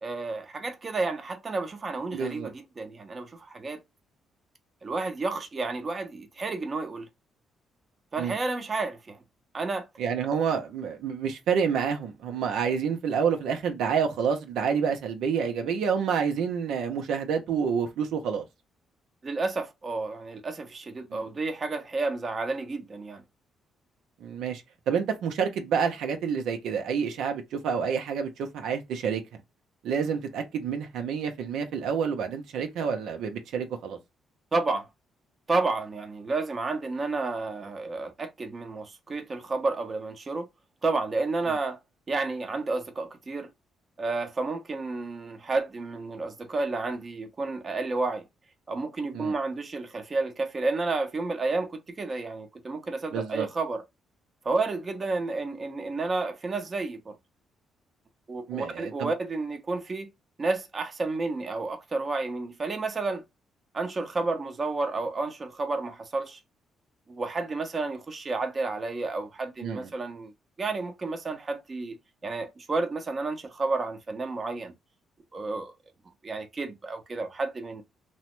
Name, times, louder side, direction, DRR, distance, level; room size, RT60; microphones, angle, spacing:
voice 1, 0.0-3.8 4.8-7.1 8.1-9.2 9.5-9.9 19.2-23.2 34.5-34.9 35.5-40.5 40.8-41.8 42.1-43.5 44.0-48.2 48.7-53.8 54.4-57.1 58.3-60.1 60.4-63.2 63.7-66.4 67.1-70.3 70.6-72.0 72.2-74.7 75.3-75.7 76.2-77.8, right 3 dB, 35° right, 0.7 m, -31 dB
voice 2, 2.1-2.5 8.2-8.3 10.0-18.4 21.1-21.2 24.2-29.2 29.8-34.0 49.1-49.3 53.1-53.5 58.5-59.1 69.6-69.9, right 6 dB, 80° right, 0.6 m, -28 dB
3.1 x 2.1 x 3.0 m
cardioid pair, 90°, 0 cm